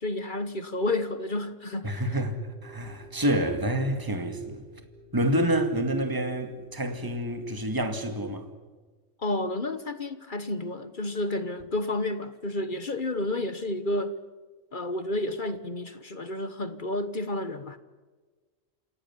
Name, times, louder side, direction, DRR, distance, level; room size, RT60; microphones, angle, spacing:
voice 1, 0.0-2.0 9.2-14.2 14.7-17.8, left 2 dB, 40° left, 1.3 m, -31 dB
sound 1, 1.8-8.1, equal, 60° left, 8.3 m, -52 dB
voice 2, 1.8-4.6 5.1-8.5, right 1 dB, 15° right, 2.1 m, -28 dB
28.0 x 17.0 x 9.7 m
omnidirectional pair, 1.3 m